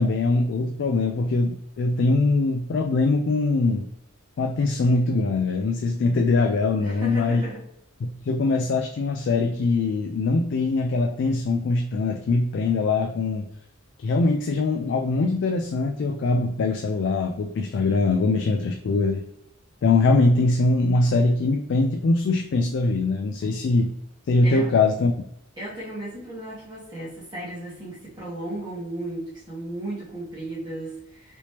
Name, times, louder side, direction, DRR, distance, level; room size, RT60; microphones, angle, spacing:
voice 1, 0.0-3.9 4.4-7.4 8.0-13.5 14.0-19.2 19.8-23.9 24.3-25.1, left 3 dB, 60° left, 4 dB, 0.3 m, -22 dB
voice 2, 6.8-7.6 24.4-24.7 25.6-31.4, right 1 dB, 20° right, -7 dB, 1.1 m, -35 dB
3.3 x 2.9 x 2.9 m, 0.76 s
head